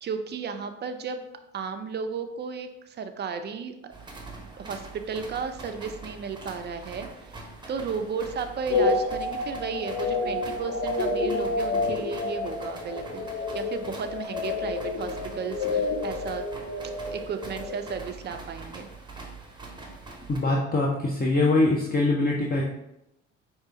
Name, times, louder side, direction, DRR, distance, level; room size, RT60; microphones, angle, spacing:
voice 1, 0.0-1.2 1.5-3.9 4.4-16.5 17.1-18.9, right 5 dB, 30° right, 7 dB, 0.4 m, -34 dB
sound 1, 3.9-20.4, right 3 dB, 10° right, 0.9 m, -43 dB
sound 2, 8.7-17.9, left 3 dB, 65° left, 0.8 m, -29 dB
voice 2, 20.3-22.6, left 2 dB, 25° left, -2 dB, 0.6 m, -23 dB
4.6 x 2.8 x 2.8 m, 0.84 s
hypercardioid pair, 50°, 36 cm